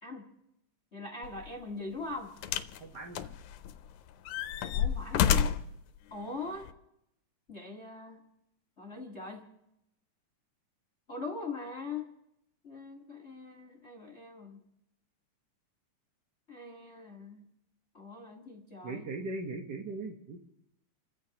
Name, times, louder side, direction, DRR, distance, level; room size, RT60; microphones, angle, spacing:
voice 1, 0.9-2.3 4.7-5.5 6.1-6.7 7.5-8.2 8.8-9.5 11.1-12.1 12.6-14.6 16.5-17.4 17.9-19.1, left 3 dB, 35° left, 0 dB, 1.2 m, -41 dB
sound 1, 1.2-1.4 2.4-2.8 3.1-3.9 4.3-5.7 6.6-6.7, left 8 dB, 80° left, 2.2 m, -29 dB
voice 2, 2.8-3.3 18.8-20.4, right 3 dB, 60° right, 1 dB, 1.1 m, -39 dB
29.5 x 15.0 x 2.9 m, 0.82 s
omnidirectional pair, 3.5 m